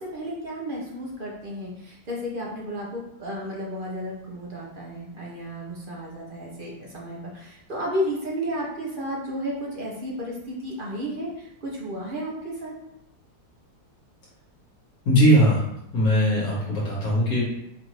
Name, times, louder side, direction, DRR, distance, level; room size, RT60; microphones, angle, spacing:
voice 1, 0.0-12.7, equal, 45° right, -3 dB, 0.7 m, -33 dB
voice 2, 15.0-15.6 15.9-17.4, equal, 65° left, -7 dB, 1.7 m, -19 dB
4.9 x 2.6 x 3.0 m, 0.78 s
omnidirectional pair, 1.7 m